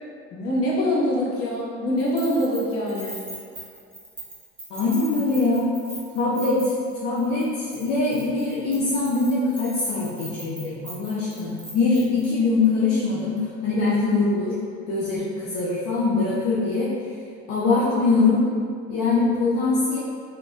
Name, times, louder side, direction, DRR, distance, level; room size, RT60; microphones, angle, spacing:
voice 1, 0.3-3.2, left 1 dB, 50° left, -5 dB, 0.9 m, -24 dB
Keys jangling, 2.0-6.9 7.2-7.5 7.7-12.3, right 1 dB, 15° right, 0.9 m, -40 dB
voice 2, 4.7-5.7 6.1-14.6 14.9-16.9 17.5-18.5 18.9-20.0, left 3 dB, 75° left, -8 dB, 0.6 m, -23 dB
3.3 x 2.2 x 2.6 m, 2.2 s
supercardioid pair, 90°, 31 cm